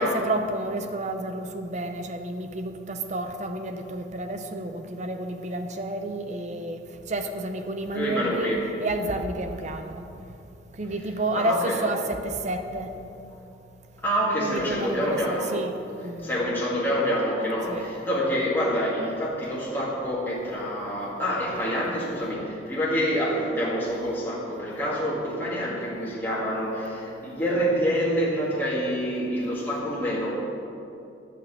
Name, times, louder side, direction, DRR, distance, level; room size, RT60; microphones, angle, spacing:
voice 1, 0.0-6.8 7.1-10.0 10.8-12.9 14.4-15.7 16.0-16.5 17.7-17.8, right 1 dB, 40° right, 6 dB, 0.7 m, -30 dB
voice 2, 7.9-8.6 11.3-11.8 14.0-15.5 16.2-30.3, equal, 10° left, -7 dB, 2.2 m, -27 dB
11.5 x 5.9 x 8.2 m, 2.8 s
head